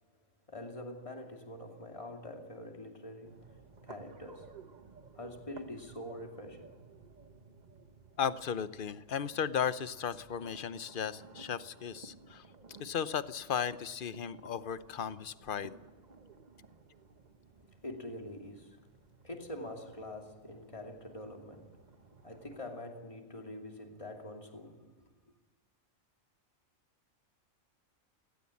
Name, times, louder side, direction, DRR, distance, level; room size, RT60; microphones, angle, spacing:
voice 1, 0.5-3.6 3.8-4.6 5.1-6.8 17.8-18.8 19.2-21.8 22.2-25.1, left 1 dB, 25° left, 2.7 m, -45 dB
sound 1, 3.2-22.7, right 4 dB, 35° right, 1.1 m, -56 dB
voice 2, 8.2-12.4 12.8-15.7, left 7 dB, 45° left, 0.9 m, -35 dB
18.0 x 17.0 x 8.5 m
omnidirectional pair, 1.4 m